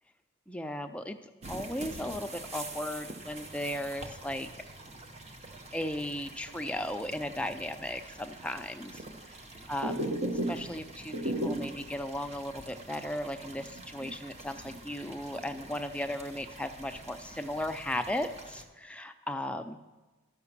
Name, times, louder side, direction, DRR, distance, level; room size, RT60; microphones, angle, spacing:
voice 1, 0.5-1.2 1.5-4.5 5.7-19.8, left 1 dB, 5° left, 6 dB, 0.4 m, -36 dB
sound 1, 1.4-18.6, right 2 dB, 30° right, 0.7 m, -47 dB
sound 2, 9.7-10.7 11.0-11.8 12.2-12.3 12.7-12.8 13.4-14.8 15.1-15.7, right 1 dB, 55° right, 1.1 m, -34 dB
12.0 x 5.9 x 7.2 m, 1.2 s
head